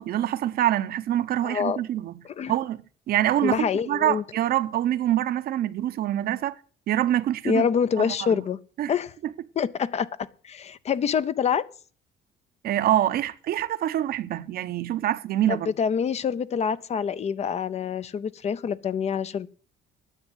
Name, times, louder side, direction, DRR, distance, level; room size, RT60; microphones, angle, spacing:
voice 1, 0.0-2.1 2.5-2.8 3.1-6.6 6.9-7.7 8.0-8.4 8.8-8.9 9.2-9.3 12.6-15.7, right 12 dB, 65° right, 0.8 m, -25 dB
voice 2, 1.4-1.8 2.2-2.6 3.4-4.2 7.4-8.6 8.9-9.1 9.6-11.7 15.5-19.5, left 7 dB, 40° left, 0.6 m, -26 dB
10.0 x 7.2 x 7.9 m
cardioid pair, 110°, 17 cm